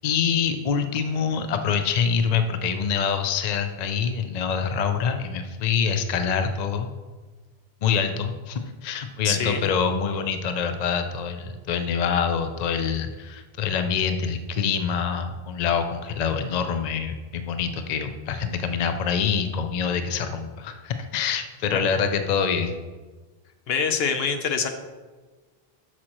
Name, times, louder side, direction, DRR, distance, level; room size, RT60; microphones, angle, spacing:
voice 1, 0.0-6.9 7.8-22.7, left 6 dB, 50° left, 7 dB, 0.6 m, -25 dB
voice 2, 9.2-9.6 21.7-21.8 23.7-24.7, left 6 dB, 75° left, 7 dB, 0.9 m, -25 dB
8.3 x 6.3 x 3.0 m, 1.3 s
omnidirectional pair, 1.1 m